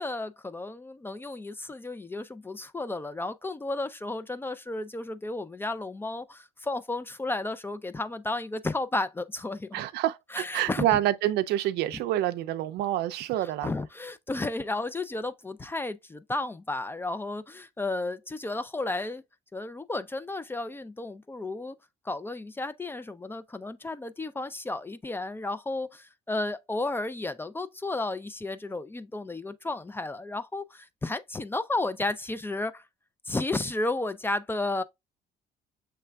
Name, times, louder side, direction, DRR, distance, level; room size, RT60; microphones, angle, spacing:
voice 1, 0.0-9.8 10.3-10.8 13.4-19.2 19.5-21.8 22.1-32.8 33.3-34.8, left 2 dB, 15° left, 0.3 m, -33 dB
voice 2, 9.7-13.7, right 13 dB, 80° right, 0.4 m, -27 dB
6.8 x 3.2 x 2.2 m
cardioid pair, 110°, 17 cm